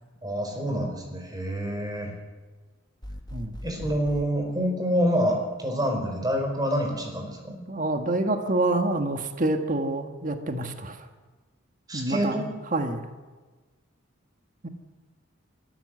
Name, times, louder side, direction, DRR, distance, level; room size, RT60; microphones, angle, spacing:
voice 1, 0.2-2.1 3.6-7.6 11.9-12.5, equal, 20° right, 3 dB, 5.0 m, -27 dB
sound 1, 3.0-4.3, equal, 20° left, 1.6 m, -39 dB
voice 2, 7.7-11.1 11.9-13.1 14.6-14.7, right 2 dB, 40° right, 6 dB, 1.6 m, -27 dB
23.5 x 15.0 x 7.8 m, 1.3 s
head